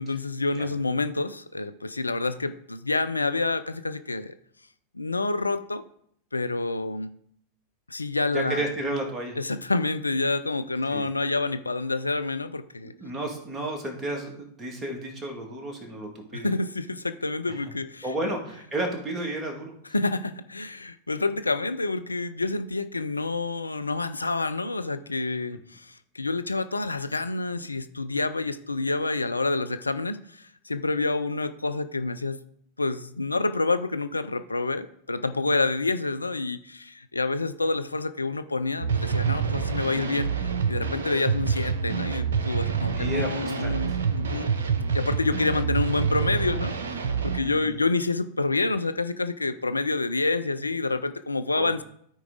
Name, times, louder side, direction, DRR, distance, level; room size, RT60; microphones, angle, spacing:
voice 1, 0.0-4.3 4.9-5.8 6.3-7.1 7.9-8.6 9.4-12.9 16.3-18.1 19.9-32.4 32.8-44.5 44.9-51.8, left 3 dB, 80° left, 11 dB, 0.4 m, -28 dB
voice 2, 8.3-9.4 10.9-11.1 13.0-14.3 14.6-16.5 18.0-19.7 25.5-25.6 42.9-44.0 47.4-47.8 51.5-51.7, right 1 dB, 20° right, 2 dB, 2.0 m, -32 dB
sound 1, 38.8-47.4, right 6 dB, 65° right, 0.7 m, -27 dB
13.0 x 4.7 x 3.8 m, 0.69 s
figure-of-eight pair, 90°, 0 cm